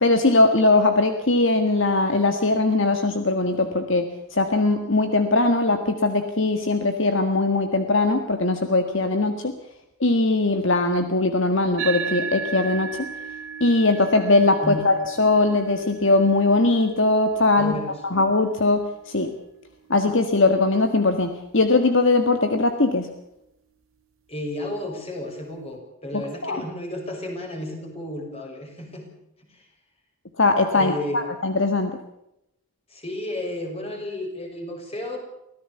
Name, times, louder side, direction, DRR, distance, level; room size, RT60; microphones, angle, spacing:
voice 1, 0.0-9.5 10.0-13.1 13.6-17.7 18.1-19.3 19.9-23.1 26.4-26.6 30.4-32.0, left 2 dB, 60° left, 7 dB, 1.7 m, -20 dB
sound 1, 11.8-20.5, right 6 dB, 80° right, 2.4 m, -36 dB
voice 2, 14.6-14.9 17.6-18.0 24.3-29.1 29.5-29.6 30.7-31.3 32.9-35.2, left 1 dB, 30° left, 2 dB, 6.1 m, -32 dB
24.5 x 16.5 x 7.0 m, 0.82 s
head